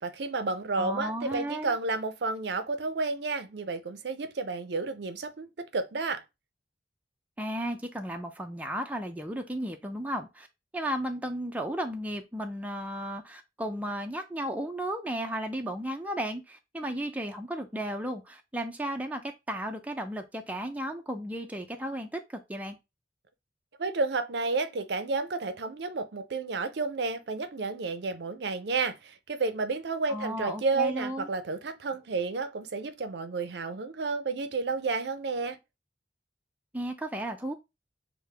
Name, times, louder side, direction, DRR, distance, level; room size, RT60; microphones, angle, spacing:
voice 1, 0.0-6.2 23.8-35.6, right 3 dB, 65° right, 0.5 m, -31 dB
voice 2, 0.8-1.8 7.4-10.5 10.7-19.2 19.5-22.8 30.1-31.3 36.7-37.5, right 1 dB, 10° right, 0.5 m, -34 dB
6.4 x 2.2 x 3.4 m
head